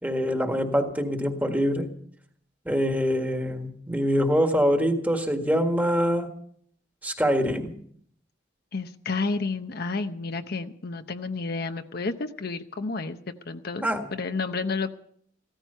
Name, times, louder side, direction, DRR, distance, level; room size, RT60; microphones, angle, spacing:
voice 1, 0.0-1.9 2.7-6.3 7.0-7.8 13.8-14.1, equal, 10° right, 5 dB, 1.7 m, -24 dB
voice 2, 8.7-13.2 13.5-14.9, left 3 dB, 55° left, 8 dB, 0.8 m, -31 dB
16.0 x 13.5 x 5.6 m, 0.63 s
head